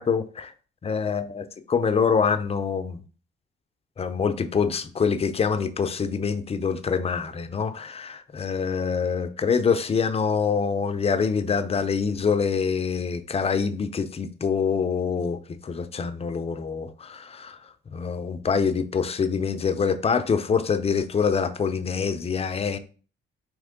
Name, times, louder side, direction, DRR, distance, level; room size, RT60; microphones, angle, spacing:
voice 1, 0.0-0.5 0.8-3.0 4.0-22.8, left 6 dB, 30° left, 0.5 m, -25 dB
4.3 x 3.0 x 3.7 m
cardioid pair, 90°, 20 cm